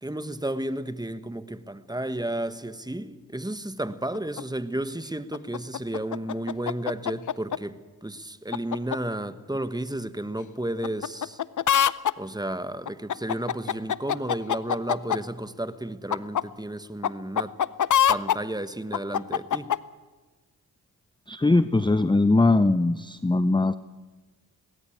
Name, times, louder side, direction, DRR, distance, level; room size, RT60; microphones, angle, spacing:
voice 1, 0.0-11.4 12.2-17.5 18.1-19.7, right 1 dB, 10° right, 1.4 m, -32 dB
sound 1, 4.1-4.4 5.3-7.6 8.5-9.0 10.8-12.1 12.9-15.2 16.1-16.4 17.0-17.1 17.4-18.4 18.9-19.8, left 9 dB, 45° left, 0.7 m, -24 dB
voice 2, 21.3-23.7, left 2 dB, 10° left, 0.7 m, -21 dB
20.0 x 18.0 x 8.7 m
supercardioid pair, 45°, 41 cm